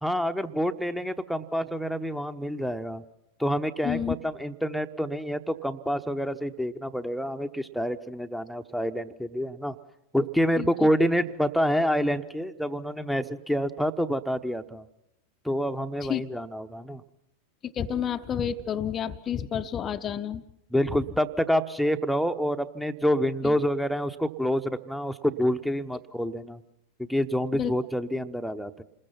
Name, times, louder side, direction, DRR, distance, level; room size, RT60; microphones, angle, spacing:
voice 1, 0.0-3.0 3.4-9.8 10.1-14.8 15.4-17.0 20.7-26.6 27.0-28.8, equal, ahead, 10 dB, 0.9 m, -27 dB
voice 2, 3.8-4.2 10.6-10.7 16.0-16.2 17.6-20.4 23.4-23.5 27.6-27.7, left 8 dB, 25° left, 8 dB, 0.7 m, -30 dB
28.5 x 20.5 x 5.8 m, 0.81 s
figure-of-eight pair, 90°, 0 cm